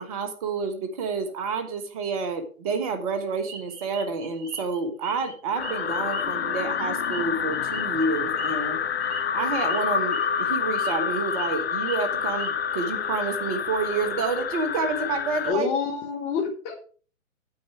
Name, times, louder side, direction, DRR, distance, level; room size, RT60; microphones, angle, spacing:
voice 1, 0.0-8.8 9.3-15.7, right 4 dB, 25° right, 8 dB, 1.5 m, -29 dB
sound 1, 3.5-5.3 5.6-8.7 9.0-9.2 9.6-9.8 10.1-10.4 10.7-11.5 11.8-12.9, right 4 dB, 40° right, 6.5 m, -42 dB
sound 2, 5.6-15.5, left 7 dB, 45° left, 0.7 m, -28 dB
voice 2, 15.4-16.7, left 6 dB, 15° left, 4 dB, 1.7 m, -27 dB
9.6 x 8.5 x 4.7 m, 0.40 s
figure-of-eight pair, 140°, 41 cm